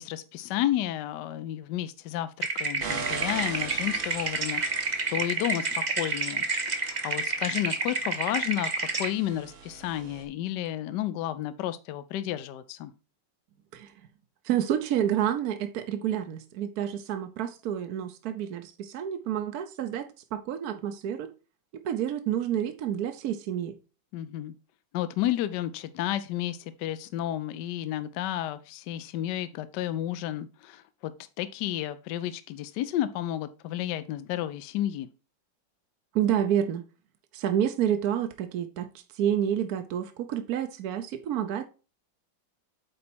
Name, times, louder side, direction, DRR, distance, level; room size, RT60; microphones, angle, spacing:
voice 1, 0.0-12.9 24.1-24.5 24.9-35.1, left 12 dB, 75° left, 1.1 m, -32 dB
sound 1, 2.4-9.1, right 3 dB, 35° right, 0.8 m, -30 dB
sound 2, 2.8-10.2, right 5 dB, 85° right, 2.0 m, -41 dB
voice 2, 14.4-21.3 21.7-23.7 36.1-36.8 37.3-38.9 39.1-41.7, right 10 dB, 65° right, 1.0 m, -29 dB
8.6 x 4.2 x 4.3 m
omnidirectional pair, 2.1 m